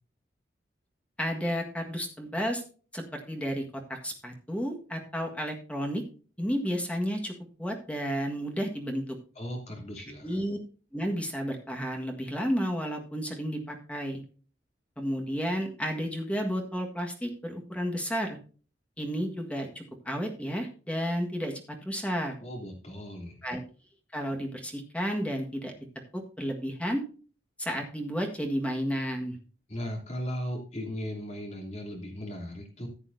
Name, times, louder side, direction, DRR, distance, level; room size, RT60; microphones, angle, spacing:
voice 1, 1.2-2.6 2.9-3.6 3.9-6.0 6.4-7.3 7.6-9.0 10.2-10.6 10.9-14.2 15.0-18.4 19.0-21.5 21.8-22.3 23.4-23.6 24.1-25.7 26.1-27.0 27.6-29.4, equal, 5° left, 2 dB, 1.6 m, -32 dB
voice 2, 9.3-10.4 22.4-23.4 29.7-32.9, equal, 40° left, 0 dB, 3.0 m, -37 dB
14.5 x 8.7 x 2.7 m, 0.38 s
head